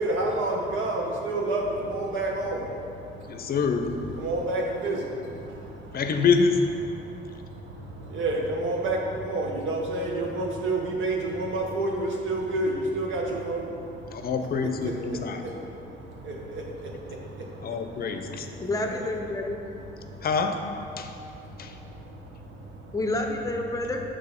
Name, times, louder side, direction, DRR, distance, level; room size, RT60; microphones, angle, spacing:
voice 1, 0.0-1.6 1.9-2.6 4.2-5.0 8.1-9.0 9.3-13.6, right 2 dB, 75° right, 0 dB, 1.1 m, -28 dB
voice 2, 3.3-3.9 5.9-6.6 14.1-15.4 17.6-18.5 20.2-20.6 21.0-21.1 21.6-21.8, left 5 dB, 50° left, 6 dB, 0.6 m, -26 dB
voice 3, 18.6-19.6 22.9-24.0, left 2 dB, 15° left, 3 dB, 0.7 m, -29 dB
6.8 x 3.7 x 5.1 m, 2.8 s
cardioid pair, 90°, 20 cm